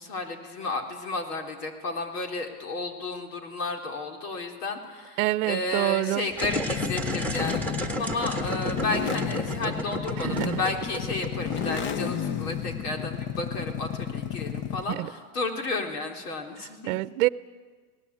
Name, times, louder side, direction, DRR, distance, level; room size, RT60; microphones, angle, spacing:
voice 1, 0.0-16.9, left 2 dB, 85° left, 4.1 m, -32 dB
voice 2, 5.2-6.3 10.2-10.6 14.9-15.1 16.6-17.3, right 19 dB, 60° right, 0.8 m, -27 dB
sound 1, 6.3-12.2, equal, 5° left, 1.8 m, -33 dB
sound 2, 6.4-15.0, left 8 dB, 25° left, 0.7 m, -32 dB
26.0 x 18.5 x 8.5 m
supercardioid pair, 140°, 45 cm